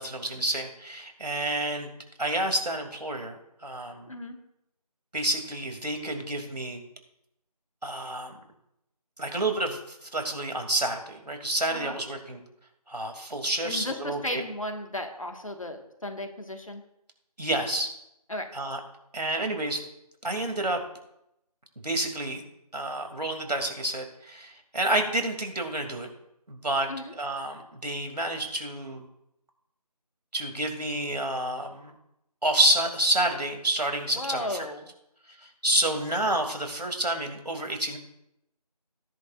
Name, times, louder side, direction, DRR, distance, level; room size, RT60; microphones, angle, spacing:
voice 1, 0.0-1.9 2.2-4.1 5.1-6.8 7.8-8.3 9.2-12.4 12.9-14.4 17.4-17.9 18.5-18.8 19.1-19.8 20.2-20.8 21.8-22.5 22.7-26.1 26.5-29.0 30.3-31.9 32.4-34.7 35.4-38.0, right 1 dB, 80° right, 4 dB, 2.7 m, -29 dB
voice 2, 4.1-4.4 11.7-12.0 13.6-16.8 18.3-18.5 26.9-27.1 34.2-34.8, left 1 dB, 55° left, 5 dB, 1.6 m, -35 dB
16.5 x 10.5 x 2.5 m, 0.81 s
figure-of-eight pair, 175°, 21 cm